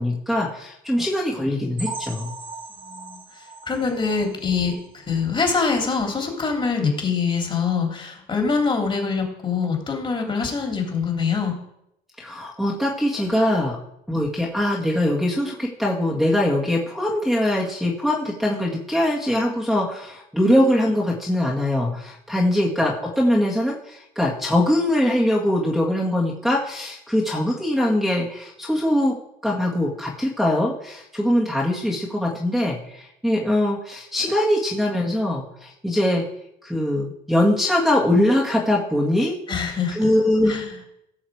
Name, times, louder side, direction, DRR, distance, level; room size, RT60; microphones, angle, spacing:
voice 1, 0.0-2.3 12.2-13.8 14.1-29.2 29.4-36.2 36.6-39.4 39.9-40.6, left 1 dB, ahead, -5 dB, 1.9 m, -22 dB
sound 1, 1.8-5.4 5.8-6.0 6.3-6.4 6.9-7.0, right 4 dB, 30° right, 1.9 m, -39 dB
voice 2, 2.8-3.2 3.7-11.5 39.5-40.1 40.4-40.7, left 5 dB, 30° left, 2 dB, 3.0 m, -24 dB
16.0 x 6.4 x 4.8 m, 0.81 s
cardioid pair, 110°, 17 cm